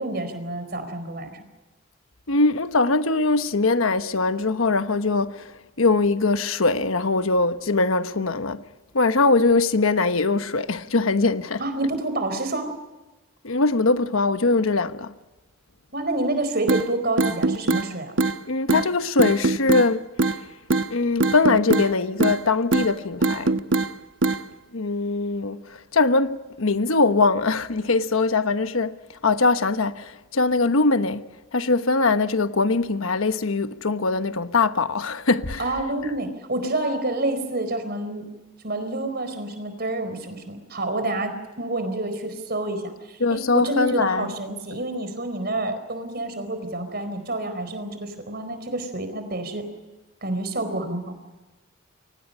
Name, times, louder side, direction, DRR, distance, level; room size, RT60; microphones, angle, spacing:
voice 1, 0.0-1.4 11.6-12.7 15.9-18.1 35.6-38.3 38.6-49.7 50.2-51.2, right 2 dB, 50° right, 4.4 m, -28 dB
voice 2, 2.3-8.6 8.9-11.6 13.4-15.1 18.5-20.1 20.9-23.6 24.7-35.7 43.2-44.3 44.7-44.8, left 3 dB, 90° left, 1.2 m, -22 dB
sound 1, 16.7-16.8 17.2-17.8 18.2-18.3 18.7-18.8 19.2-19.9 20.2-20.4 20.7-20.9 21.2-21.9 22.2-22.4 22.7-22.9 23.2-23.9 24.2-24.4, right 3 dB, 65° right, 1.1 m, -21 dB
29.0 x 24.5 x 5.6 m
head